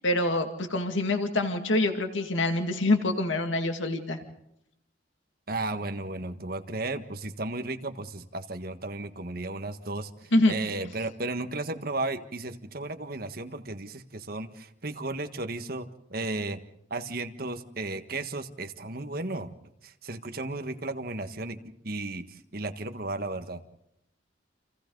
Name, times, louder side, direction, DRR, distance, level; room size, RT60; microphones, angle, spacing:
voice 1, 0.0-4.2 10.3-10.5, left 2 dB, 90° left, 5 dB, 2.2 m, -25 dB
voice 2, 5.5-16.6 16.9-19.5 19.8-21.6 21.8-23.6, right 2 dB, 50° right, 7 dB, 1.5 m, -34 dB
30.0 x 28.0 x 4.0 m, 0.80 s
head